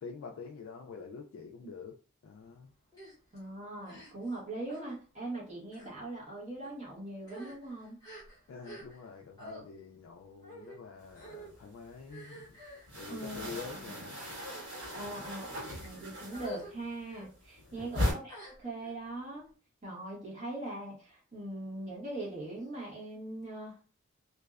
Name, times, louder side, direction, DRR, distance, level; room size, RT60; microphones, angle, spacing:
voice 1, 0.0-2.0 2.2-2.7 8.5-12.6 12.9-14.2 14.9-15.1 17.6-17.9, left 5 dB, 70° left, 1 dB, 0.3 m, -47 dB
sound 1, 2.9-3.2 3.8-4.4 4.7-5.0 5.7-5.9 6.6-6.8 7.2-9.1 9.4-9.6 10.4-10.8 11.2-11.5 12.1-12.9 13.6-13.8 14.3-15.0 15.6-15.9 16.3-16.7 17.0-17.3 18.3-18.9, equal, 20° left, 0.8 m, -49 dB
voice 2, 3.3-8.0 13.1-13.6 14.9-15.5 15.8-19.5 19.8-23.8, right 2 dB, 30° right, -5 dB, 1.1 m, -41 dB
sound 2, 11.1-12.1 12.4-16.8 17.1-18.1, left 1 dB, 60° right, 1.4 m, -37 dB
2.6 x 2.1 x 2.3 m, 0.38 s
head